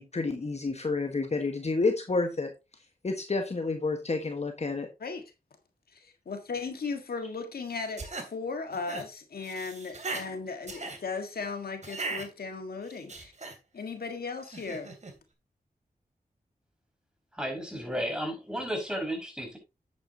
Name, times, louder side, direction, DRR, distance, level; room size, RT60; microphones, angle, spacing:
voice 1, 0.0-2.5 3.0-4.9, left 3 dB, 45° left, 1.4 m, -29 dB
voice 2, 5.9-13.3 13.7-14.9, left 4 dB, 80° left, 1.7 m, -36 dB
sound 1, 7.7-8.3 8.7-9.0 9.4-10.3 10.6-11.0 11.8-12.3 12.8-13.6 14.4-15.1, right 3 dB, 50° right, 2.9 m, -38 dB
voice 3, 17.3-19.6, equal, 5° right, 5.6 m, -33 dB
9.8 x 8.9 x 2.9 m
cardioid pair, 60°, 16 cm